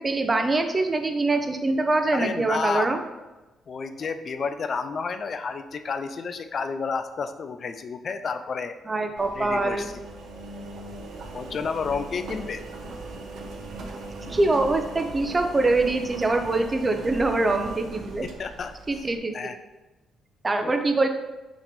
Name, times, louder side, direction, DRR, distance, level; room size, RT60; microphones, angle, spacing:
voice 1, 0.0-3.0 8.9-9.9 14.3-18.3 18.9-19.5 20.4-21.1, right 2 dB, 25° right, 6 dB, 0.7 m, -24 dB
voice 2, 2.1-2.9 3.7-8.8 9.3-9.9 11.3-12.6 18.2-18.7 19.3-19.6 20.6-20.7, left 5 dB, 50° left, 9 dB, 0.5 m, -30 dB
Engine, 9.2-19.2, right 2 dB, 70° right, 0.8 m, -39 dB
6.0 x 3.2 x 5.2 m, 1.1 s
cardioid pair, 90°, 0 cm